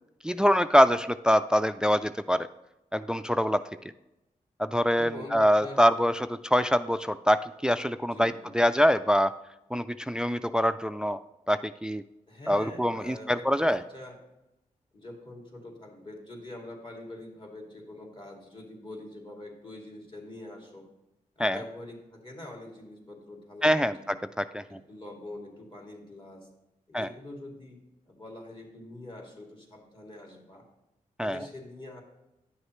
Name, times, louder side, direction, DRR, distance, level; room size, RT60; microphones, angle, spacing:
voice 1, 0.2-2.5 2.9-3.6 4.6-9.3 9.7-11.2 11.5-12.0 12.5-13.8 21.4-21.6 23.6-24.0 24.4-24.6 26.9-27.1 31.2-31.4, equal, 5° right, 13 dB, 0.3 m, -24 dB
voice 2, 5.0-5.8 8.1-8.5 12.3-14.2 14.9-20.9 21.4-24.1 24.7-26.5 26.9-30.7 31.2-32.0, left 1 dB, 35° left, 0 dB, 2.4 m, -44 dB
10.5 x 6.4 x 3.1 m, 0.92 s
cardioid pair, 55°, 15 cm